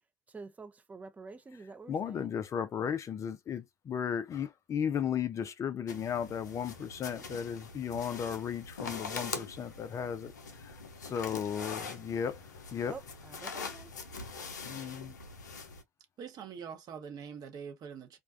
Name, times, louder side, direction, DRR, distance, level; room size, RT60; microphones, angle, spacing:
voice 1, 0.3-2.3 12.8-13.9, right 4 dB, 15° right, 0.5 m, -48 dB
voice 2, 1.9-10.3 10.6-13.0 14.6-15.2, left 8 dB, 35° left, 0.4 m, -35 dB
sound 1, 5.9-15.8, left 4 dB, 90° left, 0.5 m, -43 dB
voice 3, 16.2-18.2, right 7 dB, 45° right, 0.9 m, -44 dB
2.4 x 2.2 x 2.4 m
hypercardioid pair, 75°, 9 cm